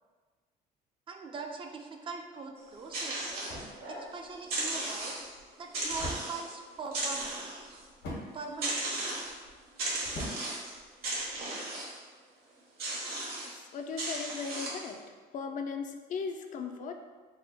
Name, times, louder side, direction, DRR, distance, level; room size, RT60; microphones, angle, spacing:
voice 1, 1.1-3.4 3.9-5.2 5.6-7.6 8.3-9.1, right 4 dB, 30° right, 3 dB, 0.4 m, -42 dB
sound 1, 2.6-11.5, left 1 dB, 85° left, 1.3 m, -46 dB
sound 2, 2.6-4.1 4.4-5.4 5.7-6.5 6.9-7.8 8.6-9.4 9.8-10.7 11.0-12.0 12.8-13.5 14.0-14.9, right 2 dB, 70° right, 1.3 m, -36 dB
voice 2, 13.4-15.0 15.3-16.9, left 5 dB, 50° left, 5 dB, 0.4 m, -37 dB
3.5 x 2.2 x 4.1 m, 1.4 s
cardioid pair, 110°, 17 cm